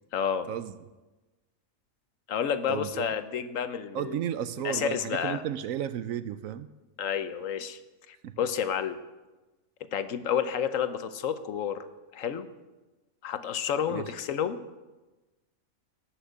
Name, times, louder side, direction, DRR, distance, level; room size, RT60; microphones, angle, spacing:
voice 1, 0.1-0.5 2.3-4.2 4.6-5.4 7.0-7.8 8.1-9.0 9.9-11.8 12.1-12.4 13.2-14.6, left 8 dB, 70° left, 11 dB, 1.2 m, -30 dB
voice 2, 2.7-3.1 3.9-6.7 8.2-8.4 13.9-14.1, right 10 dB, 75° right, 13 dB, 1.0 m, -33 dB
18.0 x 6.3 x 8.0 m, 1.2 s
omnidirectional pair, 1.4 m